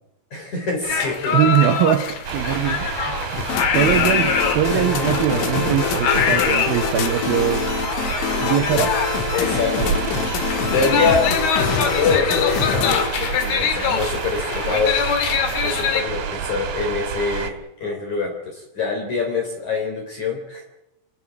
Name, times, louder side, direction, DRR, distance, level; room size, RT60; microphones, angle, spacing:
voice 1, 0.3-1.5 2.8-3.1 4.8-5.2 8.7-8.9 9.3-10.0 10.7-14.9 15.3-20.7, left 4 dB, 40° left, 2 dB, 4.4 m, -25 dB
sound 1, 0.8-16.0, left 6 dB, 60° left, 3.9 m, -24 dB
voice 2, 1.3-7.6 8.4-8.9, right 11 dB, 75° right, 7 dB, 2.2 m, -22 dB
sound 2, 2.2-17.5, right 7 dB, 55° right, 3.6 m, -29 dB
sound 3, 3.4-13.1, left 7 dB, 75° left, 4.0 m, -25 dB
27.0 x 14.5 x 9.6 m, 0.89 s
omnidirectional pair, 5.6 m